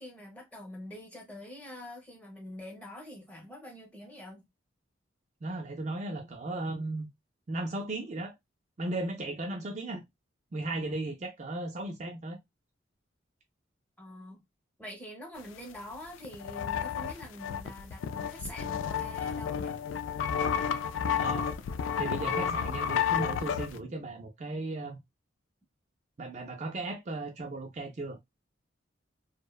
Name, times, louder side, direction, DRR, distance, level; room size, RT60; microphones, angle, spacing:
voice 1, 0.0-4.4 14.0-14.4 14.8-19.8, left 1 dB, 5° left, 0.7 m, -45 dB
voice 2, 5.4-7.1 7.5-8.3 8.8-10.0 10.5-12.4 21.1-21.5 22.0-25.0 26.2-28.2, right 2 dB, 35° right, 0.3 m, -36 dB
sound 1, 15.9-16.0 16.2-23.8, left 7 dB, 80° left, 0.3 m, -31 dB
2.6 x 2.1 x 2.2 m
head